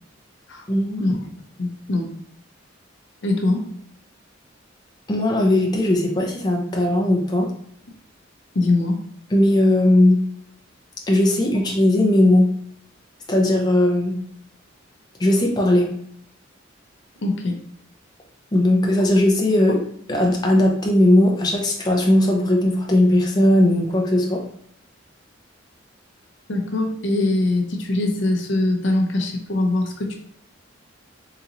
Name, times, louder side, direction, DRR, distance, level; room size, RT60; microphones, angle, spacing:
voice 1, 0.7-1.1 5.1-7.5 9.3-10.2 11.1-12.5 13.3-14.1 15.2-15.9 18.5-19.8 20.1-24.4, left 1 dB, 20° left, -1 dB, 0.5 m, -18 dB
voice 2, 1.6-2.1 3.2-3.7 8.5-9.0 17.2-17.6 26.5-30.1, left 2 dB, 65° left, 3 dB, 0.6 m, -22 dB
3.9 x 2.8 x 2.5 m, 0.66 s
head